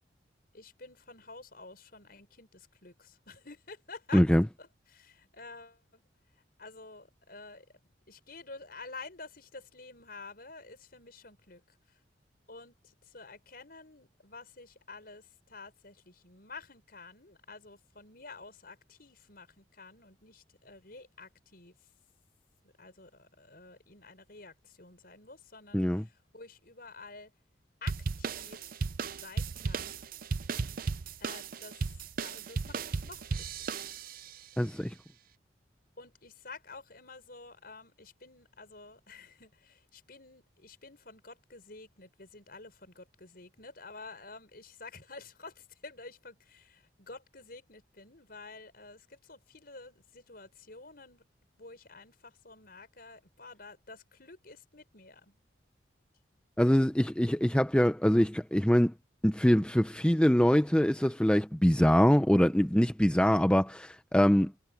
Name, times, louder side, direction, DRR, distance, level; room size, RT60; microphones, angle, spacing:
voice 1, 0.5-4.2 4.6-6.1 6.6-7.7 8.1-12.0 12.5-21.8 22.6-27.3 27.8-28.7 29.1-30.0 31.2-31.9 32.2-33.9 34.6-34.8 36.0-51.2 51.6-55.4, left 3 dB, 55° left, 6.3 m, -50 dB
voice 2, 4.1-4.4 25.7-26.0 34.6-34.9 56.6-58.9 59.2-64.5, equal, 5° left, 0.7 m, -24 dB
sound 1, 27.9-34.4, right 4 dB, 50° right, 0.5 m, -35 dB
head